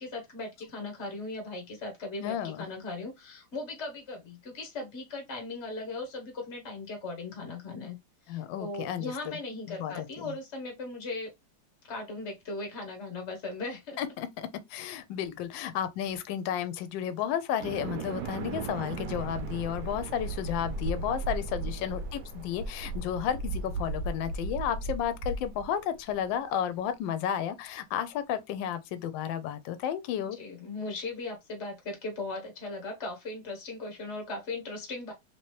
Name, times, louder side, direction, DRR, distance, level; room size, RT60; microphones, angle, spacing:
voice 1, 0.0-8.0 8.2-11.3 11.9-14.0 21.6-22.0 30.3-35.1, left 2 dB, 50° left, 0.8 m, -38 dB
voice 2, 2.2-2.6 8.3-9.4 9.7-10.3 14.0-30.4, left 9 dB, 75° left, 1.2 m, -32 dB
sound 1, 17.6-26.1, right 3 dB, 75° right, 0.9 m, -36 dB
3.2 x 2.9 x 3.0 m
omnidirectional pair, 2.3 m